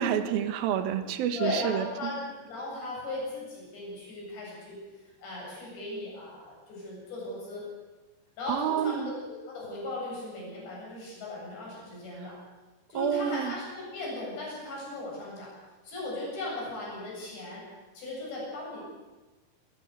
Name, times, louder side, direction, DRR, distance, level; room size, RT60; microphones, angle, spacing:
voice 1, 0.0-2.1 8.5-9.1 12.2-12.3 12.9-13.5, right 9 dB, 70° right, 8 dB, 2.9 m, -29 dB
voice 2, 1.4-4.8 5.2-7.6 8.4-9.1 9.5-12.4 12.9-15.5 15.8-17.6 17.9-18.8, left 2 dB, 85° left, -4 dB, 10.0 m, -37 dB
26.5 x 15.0 x 8.1 m, 1.2 s
omnidirectional pair, 4.9 m